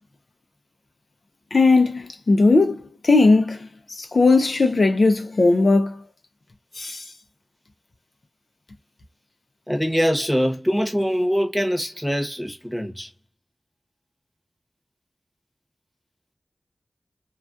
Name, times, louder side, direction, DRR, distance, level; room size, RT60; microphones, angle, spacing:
voice 1, 1.5-6.0 6.8-7.0, left 3 dB, 65° left, 0.5 m, -18 dB
voice 2, 9.7-13.1, equal, ahead, 0.9 m, -23 dB
2.3 x 2.3 x 2.4 m
wide cardioid pair, 55°, 0 cm